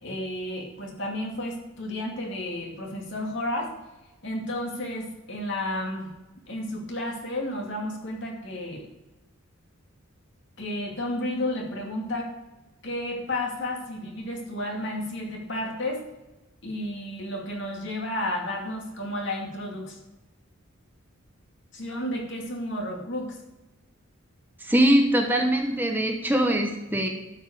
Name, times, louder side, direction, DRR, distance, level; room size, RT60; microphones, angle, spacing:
voice 1, 0.0-3.7 4.2-6.1 6.5-8.9 10.6-12.3 12.8-16.0 16.6-20.0 21.7-23.4, left 1 dB, 60° left, -1 dB, 2.5 m, -32 dB
voice 2, 24.6-27.1, right 1 dB, 10° right, 3 dB, 0.9 m, -22 dB
12.0 x 5.5 x 6.7 m, 1.0 s
head